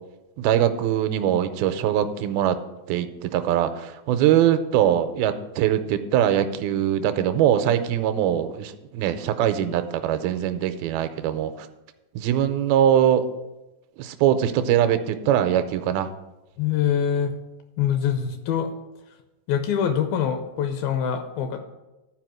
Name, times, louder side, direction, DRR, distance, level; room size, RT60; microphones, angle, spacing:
voice 1, 0.4-2.6 2.9-11.7 12.2-13.2 14.0-16.1, right 10 dB, 80° right, 9 dB, 2.3 m, -22 dB
voice 2, 16.6-17.3 17.8-18.7 19.5-21.6, left 8 dB, 80° left, 7 dB, 2.2 m, -24 dB
12.0 x 4.8 x 6.1 m, 1.0 s
omnidirectional pair, 4.7 m